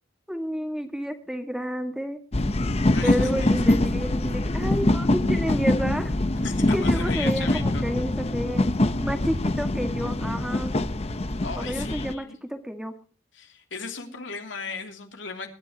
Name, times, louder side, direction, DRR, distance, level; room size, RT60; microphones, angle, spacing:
voice 1, 0.3-2.2 3.0-6.1 6.7-8.6 9.0-10.8 11.5-12.9, equal, 5° right, 5 dB, 1.7 m, -30 dB
sound 1, 2.3-12.1, left 1 dB, 35° left, 0.8 m, -24 dB
voice 2, 2.9-4.0 6.4-7.8 11.4-12.4 13.3-15.5, left 4 dB, 75° left, 4 dB, 2.9 m, -36 dB
23.5 x 11.5 x 2.9 m, 0.36 s
head